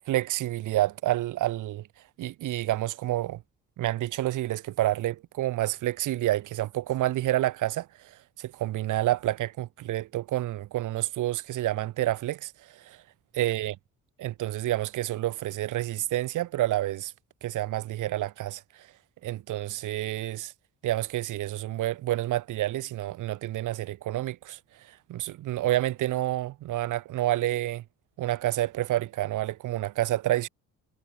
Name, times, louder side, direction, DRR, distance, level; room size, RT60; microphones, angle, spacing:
voice 1, 0.1-1.9 2.2-3.4 3.8-13.0 13.3-13.8 14.2-17.1 17.4-18.9 19.2-20.5 20.8-27.8 28.2-30.5, right 15 dB, 85° right, 2.7 m, -29 dB
cardioid pair, 90°, 30 cm